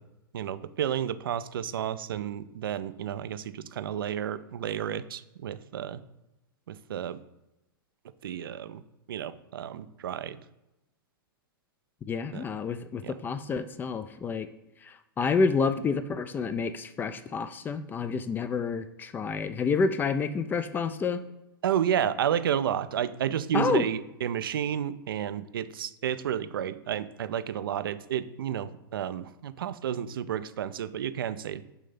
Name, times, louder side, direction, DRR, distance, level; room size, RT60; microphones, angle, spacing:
voice 1, 0.3-6.0 6.7-7.2 8.2-8.8 9.1-10.4 12.3-12.4 13.0-13.1 21.6-31.6, right 9 dB, 70° right, 13 dB, 0.4 m, -31 dB
voice 2, 12.1-14.5 14.8-21.2 23.5-23.9, left 5 dB, 15° left, 12 dB, 0.3 m, -29 dB
6.8 x 2.7 x 5.5 m, 0.95 s
figure-of-eight pair, 105°, 12 cm